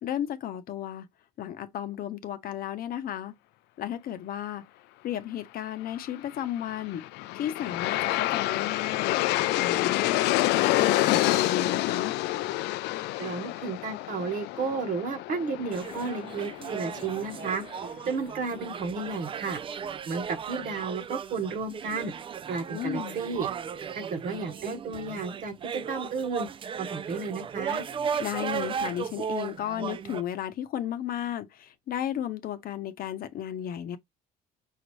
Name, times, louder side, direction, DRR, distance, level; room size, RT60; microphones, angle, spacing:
voice 1, 0.0-1.1 1.4-3.3 3.8-4.6 5.0-7.1 7.3-10.3 10.7-12.1 22.7-23.2 28.2-34.0, left 11 dB, 60° left, 0.8 m, -34 dB
Aircraft, 6.7-17.8, left 17 dB, 85° left, 0.4 m, -28 dB
voice 2, 13.2-17.6 18.1-19.6 20.1-22.1 22.5-23.5 23.9-26.5 26.8-27.8, right 4 dB, 55° right, 1.2 m, -32 dB
sound 1, 15.7-30.2, right 7 dB, 30° right, 0.4 m, -36 dB
5.7 x 2.7 x 3.1 m
cardioid pair, 110°, 17 cm